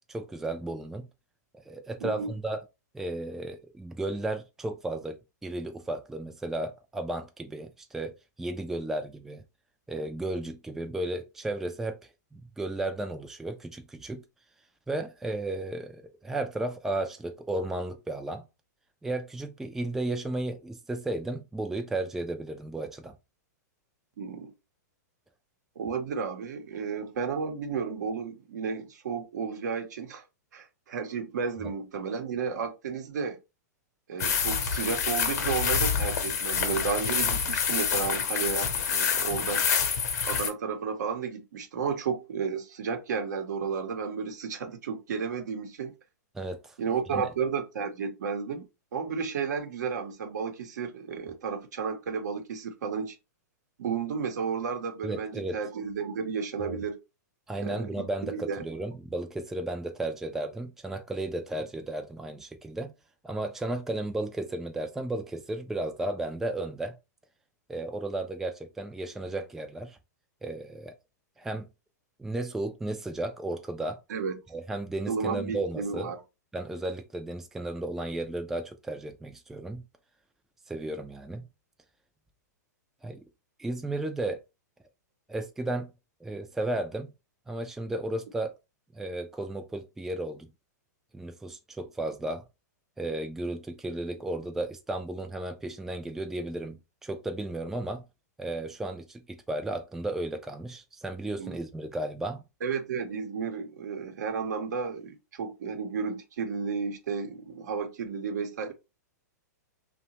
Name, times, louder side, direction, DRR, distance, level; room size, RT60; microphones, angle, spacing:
voice 1, 0.1-1.1 1.7-2.6 2.9-9.4 9.9-12.0 12.3-14.2 14.9-18.4 19.0-23.2 46.3-46.8 47.1-47.3 55.0-55.6 56.6-56.8 57.5-62.9 63.2-67.0 67.7-70.0 70.4-70.9 71.4-71.7 72.2-74.0 74.5-76.1 76.5-79.8 80.7-81.4 83.0-83.2 83.6-84.4 85.3-85.9 86.2-87.1 87.5-88.5 88.9-90.5 91.1-92.4 93.0-98.0 98.4-102.4, right 2 dB, 5° right, 0.3 m, -34 dB
voice 2, 2.0-2.3 24.2-24.5 25.8-30.2 30.5-33.4 34.1-39.7 40.2-45.9 46.8-53.2 53.8-57.0 57.6-58.7 74.1-74.4 75.1-76.2 101.4-101.6 102.6-108.7, right 5 dB, 75° right, 0.7 m, -32 dB
sound 1, 34.2-40.5, left 6 dB, 65° left, 0.8 m, -27 dB
2.7 x 2.2 x 2.8 m
hypercardioid pair, 120°, 10 cm